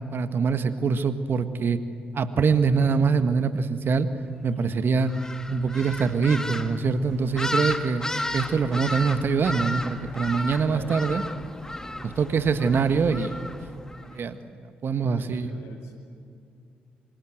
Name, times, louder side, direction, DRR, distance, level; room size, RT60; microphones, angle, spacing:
voice 1, 0.1-1.8 2.1-4.1 4.4-5.1 5.5-8.0 8.3-11.2 12.0-13.3 14.0-14.4 14.8-15.5, right 5 dB, 50° right, 10 dB, 1.6 m, -24 dB
sound 1, 5.1-14.1, left 1 dB, 15° left, 2.0 m, -33 dB
voice 2, 15.1-15.9, left 2 dB, 75° left, 3 dB, 5.3 m, -45 dB
26.5 x 26.0 x 7.8 m, 2.4 s
hypercardioid pair, 45°, 5 cm